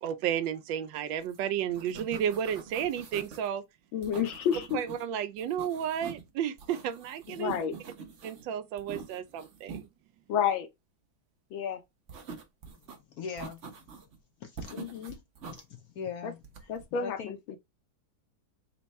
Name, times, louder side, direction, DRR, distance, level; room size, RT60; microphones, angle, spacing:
voice 1, 0.0-3.6 4.7-7.5 8.2-9.8, right 9 dB, 75° right, 1.2 m, -32 dB
sound 1, 1.2-1.4 1.6-3.5 4.0-5.0 5.4-6.3 6.6-8.4 8.8-9.9 12.1-13.0 13.4-14.2 14.6-15.6 16.4-16.9, right 5 dB, 50° right, 0.9 m, -45 dB
voice 2, 3.9-4.8 7.4-7.8 10.3-10.7 11.5-11.8 14.7-15.1 16.2-16.3 16.7-17.6, left 8 dB, 85° left, 1.6 m, -30 dB
voice 3, 13.1-13.6 14.4-15.1 15.5-17.3, left 6 dB, 65° left, 0.9 m, -41 dB
4.3 x 2.2 x 4.0 m
omnidirectional pair, 2.2 m